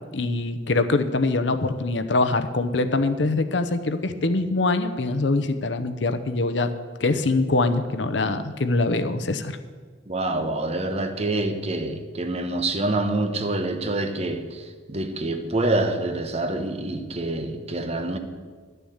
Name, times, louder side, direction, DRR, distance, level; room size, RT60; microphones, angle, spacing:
voice 1, 0.1-6.7 7.0-9.6, left 2 dB, 75° left, 0.8 m, -23 dB
voice 2, 10.1-18.2, right 2 dB, 35° right, 1.0 m, -26 dB
11.5 x 6.8 x 8.7 m
head